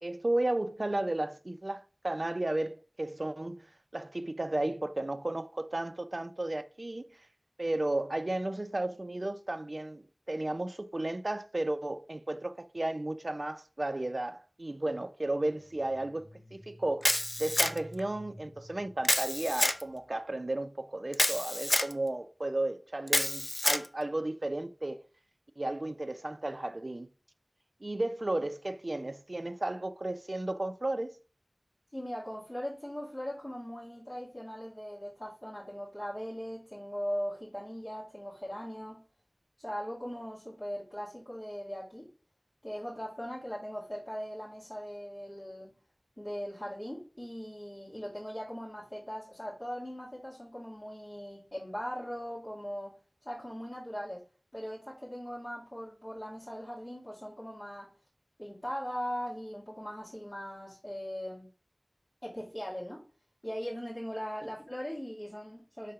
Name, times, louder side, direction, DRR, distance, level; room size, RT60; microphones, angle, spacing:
voice 1, 0.0-3.7 3.9-7.2 7.6-25.0 25.6-27.1 27.8-31.2, right 2 dB, 60° right, 0.5 m, -34 dB
sound 1, 15.4-20.2, equal, 15° right, 2.0 m, -53 dB
Camera, 17.0-18.0 19.0-19.8 21.1-21.9 23.1-23.9, left 1 dB, 40° left, 0.5 m, -28 dB
voice 2, 31.9-39.0 39.6-42.1 42.6-45.7 46.2-53.0 53.2-54.2 54.5-57.9 58.4-61.5 62.2-63.0 63.4-65.9, equal, 20° left, 2.1 m, -39 dB
4.9 x 3.7 x 5.7 m
wide cardioid pair, 45°, 0 cm